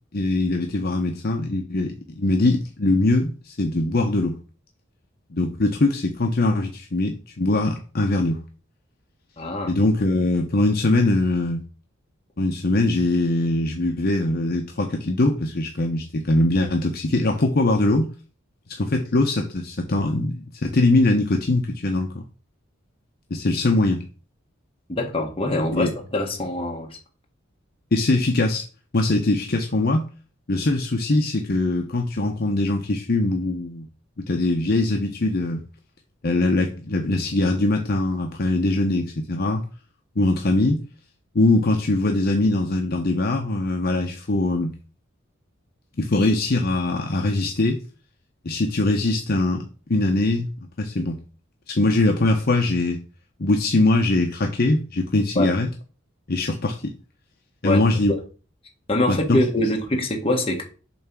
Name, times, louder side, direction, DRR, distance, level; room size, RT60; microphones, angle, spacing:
voice 1, 0.1-4.4 5.3-8.4 9.7-11.6 12.4-18.1 18.7-22.1 23.3-24.0 25.7-25.9 27.9-28.6 28.9-30.1 30.5-33.9 34.3-35.6 36.2-39.6 40.2-40.8 41.3-44.7 46.0-47.8 48.4-49.6 49.9-50.5 50.8-51.2 51.7-53.0 53.4-55.7 56.3-56.7 57.6-58.1 59.1-59.4, left 2 dB, 50° left, 0.8 m, -22 dB
voice 2, 9.4-9.7 24.9-27.0 55.3-55.5 57.6-57.8 58.9-60.6, left 1 dB, 30° left, 1.5 m, -24 dB
7.3 x 3.3 x 6.0 m
head